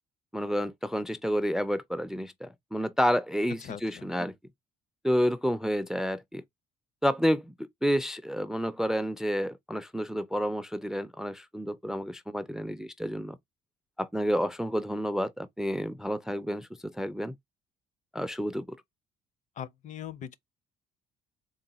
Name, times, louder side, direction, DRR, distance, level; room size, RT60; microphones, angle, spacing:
voice 1, 0.3-4.3 5.0-6.4 7.0-13.4 14.0-17.3 18.1-18.8, equal, 5° right, 0.3 m, -30 dB
voice 2, 3.6-4.1 19.6-20.4, left 9 dB, 45° left, 0.5 m, -40 dB
3.8 x 2.1 x 4.0 m
cardioid pair, 110°, 17 cm